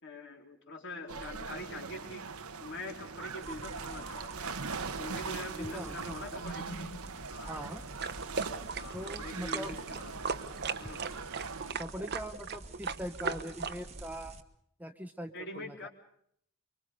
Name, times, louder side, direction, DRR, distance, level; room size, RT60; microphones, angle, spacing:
voice 1, 0.0-2.3 2.6-4.6 5.0-7.0 7.3-7.5 8.8-10.4 10.8-11.1 15.3-15.9, left 2 dB, 55° left, 1 dB, 3.8 m, -43 dB
sound 1, 1.1-11.7, right 5 dB, 80° right, 1.2 m, -41 dB
sound 2, 3.4-14.4, right 1 dB, 30° right, 1.4 m, -49 dB
voice 2, 5.6-6.2 7.5-7.8 8.9-9.8 11.8-14.4 14.8-15.9, equal, 5° right, 6 dB, 0.9 m, -42 dB
sound 3, 8.0-14.0, right 5 dB, 45° right, 1.0 m, -37 dB
24.5 x 24.5 x 5.2 m, 0.69 s
head